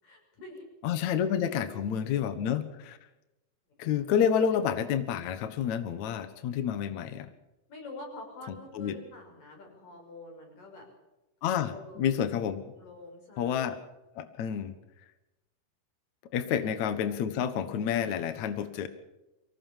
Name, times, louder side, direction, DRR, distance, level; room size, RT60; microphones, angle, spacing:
voice 1, 0.0-0.7 1.5-1.8 7.7-10.9 11.7-12.2 12.8-13.6 16.4-16.7, left 2 dB, 50° left, 2 dB, 7.6 m, -47 dB
voice 2, 0.8-3.0 3.8-7.3 8.7-8.9 11.4-12.6 13.4-13.8 14.1-14.7 16.3-18.9, left 8 dB, 70° left, 11 dB, 1.7 m, -29 dB
24.0 x 18.0 x 7.3 m, 0.98 s
omnidirectional pair, 5.3 m